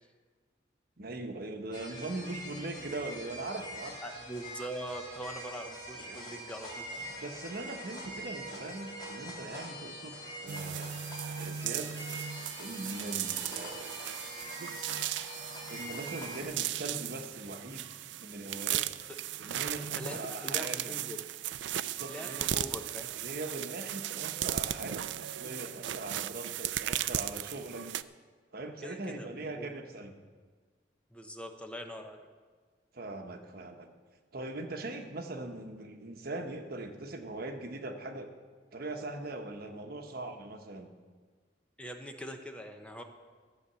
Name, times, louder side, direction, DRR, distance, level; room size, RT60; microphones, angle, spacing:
voice 1, 1.0-4.0 5.9-6.3 7.2-10.1 10.4-11.0 11.4-11.9 12.6-14.0 15.7-17.9 18.2-18.9 19.4-20.9 21.8-22.6 23.1-27.9 28.5-30.1 32.9-33.9 34.3-38.3 38.7-40.9, right 2 dB, 55° right, 5 dB, 1.1 m, -41 dB
sound 1, 1.7-16.4, equal, 25° left, 3.2 m, -44 dB
voice 2, 4.0-6.9 19.9-21.2 22.1-23.1 28.8-29.7 31.1-32.3 41.8-43.0, equal, 5° left, 4 dB, 0.8 m, -42 dB
sound 2, 10.5-28.0, right 11 dB, 75° right, 0.4 m, -36 dB
13.5 x 8.2 x 6.9 m, 1.5 s
head